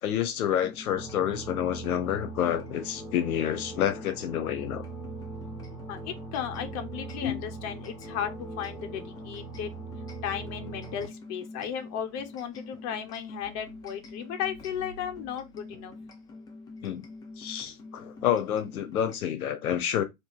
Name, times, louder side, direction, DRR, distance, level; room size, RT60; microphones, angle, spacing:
voice 1, 0.0-4.8 7.2-7.4 16.8-17.0 17.4-20.0, left 10 dB, 80° left, 0.9 m, -28 dB
sound 1, 0.6-19.2, left 3 dB, 10° left, 0.3 m, -46 dB
sound 2, 1.0-11.1, right 4 dB, 10° right, 2.3 m, -41 dB
voice 2, 5.9-9.7 10.2-15.9, left 8 dB, 35° left, 1.1 m, -35 dB
3.9 x 2.7 x 3.9 m
hypercardioid pair, 120°, 43 cm